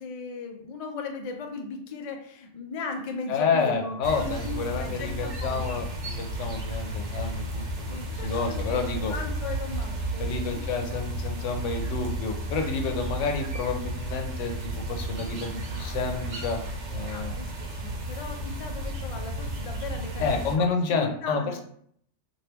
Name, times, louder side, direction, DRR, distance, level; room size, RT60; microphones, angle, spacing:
voice 1, 0.0-5.8 7.9-10.5 17.1-21.6, left 4 dB, 55° left, 3 dB, 0.4 m, -37 dB
voice 2, 3.3-7.6 7.9-9.1 10.2-16.6 16.9-17.4 20.2-21.6, left 4 dB, 90° left, 4 dB, 0.9 m, -29 dB
sound 1, 4.0-20.6, right 1 dB, 75° right, 1.0 m, -33 dB
3.3 x 2.6 x 2.9 m, 0.65 s
omnidirectional pair, 1.2 m